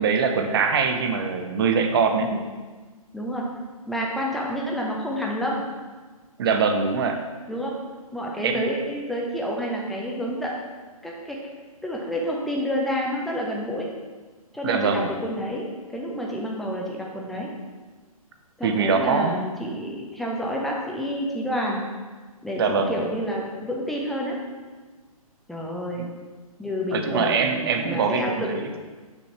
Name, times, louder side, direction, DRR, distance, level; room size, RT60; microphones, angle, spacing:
voice 1, 0.0-2.3 6.4-7.2 8.4-8.6 14.6-15.1 18.6-19.4 22.6-23.0 26.0-26.1 26.9-28.7, right 5 dB, 40° right, 6 dB, 0.6 m, -23 dB
voice 2, 3.1-3.5 3.9-5.7 7.5-7.8 8.1-10.6 11.0-11.4 11.8-13.9 14.5-17.5 18.6-21.8 22.4-24.4 25.5-26.1 26.6-28.5, equal, ahead, -2 dB, 0.5 m, -29 dB
5.9 x 3.9 x 4.5 m, 1.4 s
figure-of-eight pair, 130°, 19 cm